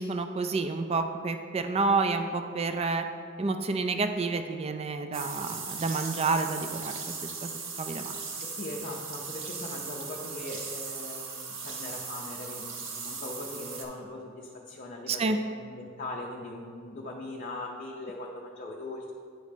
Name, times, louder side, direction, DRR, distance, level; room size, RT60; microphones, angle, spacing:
voice 1, 0.0-3.0 3.4-7.5 7.8-8.1 15.1-15.4, right 3 dB, 30° right, 7 dB, 0.3 m, -29 dB
sound 1, 5.1-13.8, right 5 dB, 75° right, 0.9 m, -38 dB
voice 2, 8.4-19.1, left 2 dB, 40° left, -1 dB, 0.5 m, -40 dB
9.1 x 3.2 x 5.0 m, 2.2 s
head